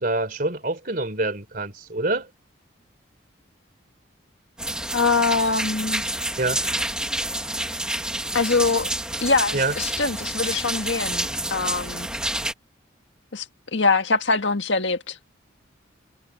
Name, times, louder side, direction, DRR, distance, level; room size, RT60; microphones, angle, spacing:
voice 1, 0.0-2.3 6.4-6.6 9.5-9.7, right 2 dB, 45° right, 3.4 m, -26 dB
sound 1, 4.6-12.5, right 1 dB, 5° right, 1.3 m, -28 dB
voice 2, 4.9-6.0 8.3-8.9 9.2-12.1 13.3-13.5 13.7-15.2, left 3 dB, 70° left, 1.7 m, -23 dB
head